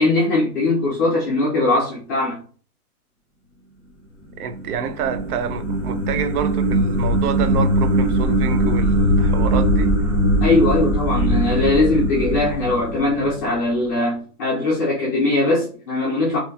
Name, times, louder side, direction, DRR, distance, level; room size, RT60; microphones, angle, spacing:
voice 1, 0.0-2.4 10.4-16.4, left 2 dB, 15° left, 0.4 m, -20 dB
sound 1, 4.3-13.6, right 1 dB, 10° right, 1.2 m, -20 dB
voice 2, 4.4-10.0, right 7 dB, 70° right, 0.6 m, -27 dB
4.0 x 2.9 x 2.3 m
hypercardioid pair, 155°, 47 cm